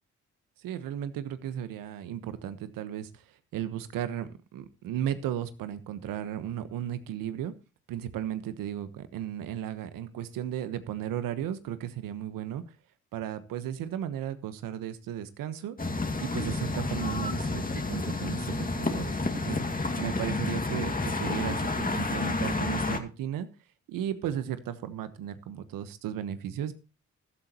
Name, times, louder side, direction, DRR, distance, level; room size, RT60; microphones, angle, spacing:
voice 1, 0.6-7.5 7.9-12.6 13.1-15.7 16.2-19.6 20.0-23.5 23.9-26.7, right 10 dB, 85° right, 12 dB, 1.3 m, -35 dB
sound 1, 15.8-23.0, left 3 dB, 25° left, 2.3 m, -30 dB
15.0 x 12.5 x 3.0 m, 0.30 s
supercardioid pair, 55°, 33 cm